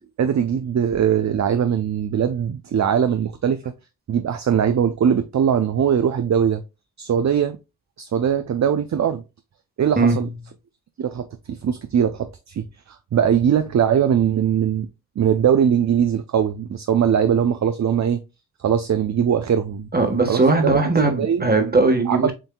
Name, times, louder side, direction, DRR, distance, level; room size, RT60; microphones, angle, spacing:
voice 1, 0.2-3.6 4.1-6.6 7.0-7.6 8.0-9.2 9.8-10.3 11.0-14.9 15.2-18.2 18.6-19.9 20.3-20.7 21.0-21.5 22.1-22.3, right 8 dB, 45° right, 0.5 m, -21 dB
voice 2, 19.9-22.3, right 3 dB, 25° right, 1.3 m, -19 dB
7.4 x 2.7 x 2.2 m
cardioid pair, 60°, 38 cm